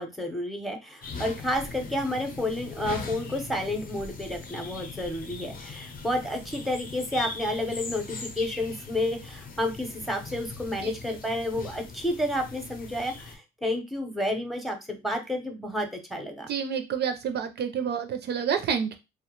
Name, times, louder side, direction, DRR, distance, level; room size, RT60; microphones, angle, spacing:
voice 1, 0.0-16.5, left 1 dB, ahead, 4 dB, 0.6 m, -30 dB
sound 1, 1.0-13.3, left 4 dB, 45° left, 0.6 m, -40 dB
voice 2, 16.4-19.0, right 7 dB, 55° right, 7 dB, 0.4 m, -29 dB
2.4 x 2.1 x 2.9 m, 0.25 s
cardioid pair, 90°, 20 cm